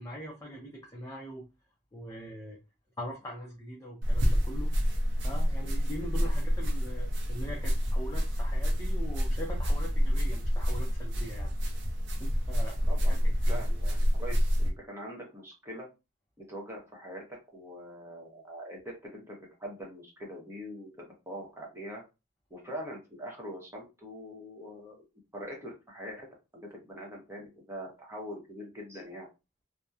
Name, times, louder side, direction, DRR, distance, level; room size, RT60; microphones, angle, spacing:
voice 1, 0.0-1.4 1.9-2.6 3.0-4.7 5.2-11.5 12.2-12.8 13.1-13.6, equal, 15° left, -3 dB, 0.5 m, -42 dB
sound 1, 4.0-14.7, equal, 70° right, 0.6 m, -28 dB
voice 2, 12.9-15.9 16.5-17.2 17.5-22.0 22.5-25.0 25.3-26.3 26.5-29.3, equal, 15° right, -2 dB, 0.8 m, -43 dB
2.8 x 2.1 x 2.3 m, 0.27 s
head